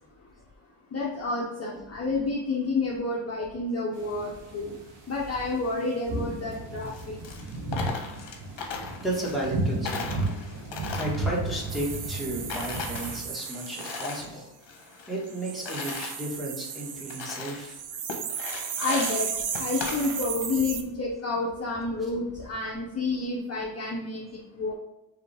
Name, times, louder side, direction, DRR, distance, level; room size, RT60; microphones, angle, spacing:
voice 1, 0.9-4.7 5.1-7.2 18.8-24.7, left 3 dB, 30° left, -3 dB, 0.7 m, -30 dB
sound 1, 4.0-13.3, right 2 dB, 55° right, 1.5 m, -34 dB
Coin (dropping), 6.8-9.6 9.8-12.2 12.5-14.3 14.6-16.1 16.7-16.8 17.1-17.7 18.1-20.5, left 5 dB, 60° left, 1.1 m, -37 dB
voice 2, 9.0-10.2 10.9-14.5 15.1-17.8, right 1 dB, ahead, -5 dB, 1.5 m, -33 dB
sound 2, 11.7-14.3 15.3-20.8, right 7 dB, 40° right, 0.5 m, -35 dB
4.8 x 3.2 x 3.4 m, 1.0 s
cardioid pair, 130°, 49 cm